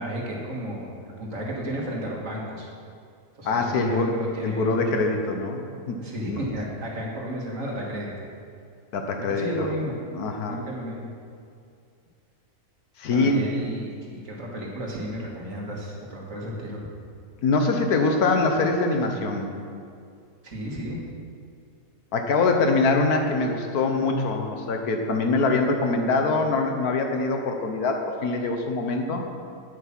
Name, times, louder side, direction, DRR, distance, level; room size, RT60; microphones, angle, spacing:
voice 1, 0.0-2.7 3.4-4.8 5.1-5.2 6.0-8.3 9.3-10.0 10.5-11.1 13.1-16.9 20.4-21.0, equal, 55° right, -2 dB, 2.0 m, -33 dB
voice 2, 3.4-4.1 4.4-6.0 6.3-6.4 8.9-9.7 10.1-10.6 13.0-13.8 17.4-19.5 22.1-29.2, left 3 dB, 70° left, 4 dB, 1.4 m, -24 dB
8.4 x 8.0 x 5.9 m, 2.4 s
omnidirectional pair, 1.7 m